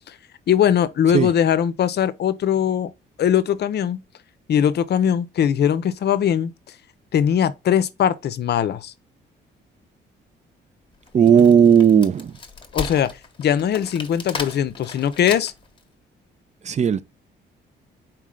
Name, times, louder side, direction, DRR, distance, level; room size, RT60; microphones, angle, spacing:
voice 1, 0.5-2.9 3.2-4.0 4.5-6.5 7.1-8.9 12.7-13.1 13.4-15.5, left 9 dB, 55° left, 0.6 m, -20 dB
Wood, 11.1-15.8, left 4 dB, 25° left, 0.9 m, -34 dB
voice 2, 11.1-12.3 16.6-17.0, right 7 dB, 35° right, 0.4 m, -15 dB
4.5 x 3.1 x 3.6 m
cardioid pair, 90°, 20 cm